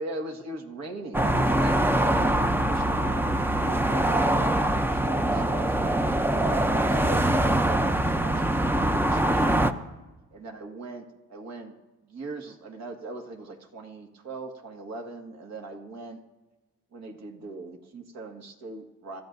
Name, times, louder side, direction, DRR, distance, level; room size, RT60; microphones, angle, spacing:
voice 1, 0.0-6.1 6.6-9.8 10.3-11.7 12.0-16.2 16.9-19.2, right 2 dB, 60° right, 3 dB, 2.0 m, -40 dB
sound 1, 1.1-9.7, right 1 dB, 5° right, 0.6 m, -23 dB
26.5 x 13.5 x 2.7 m, 1.1 s
cardioid pair, 90°, 30 cm